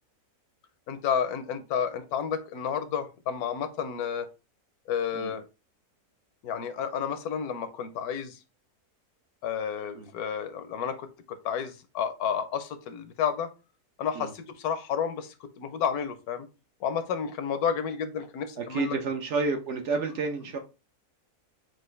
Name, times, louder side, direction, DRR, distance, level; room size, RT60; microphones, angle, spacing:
voice 1, 0.9-4.3 4.9-5.4 6.4-8.4 9.4-13.5 14.0-16.5 16.8-19.0, left 7 dB, 75° left, 10 dB, 1.1 m, -31 dB
voice 2, 18.6-20.6, right 4 dB, 60° right, 5 dB, 0.8 m, -30 dB
6.1 x 2.5 x 3.1 m, 0.29 s
omnidirectional pair, 1.6 m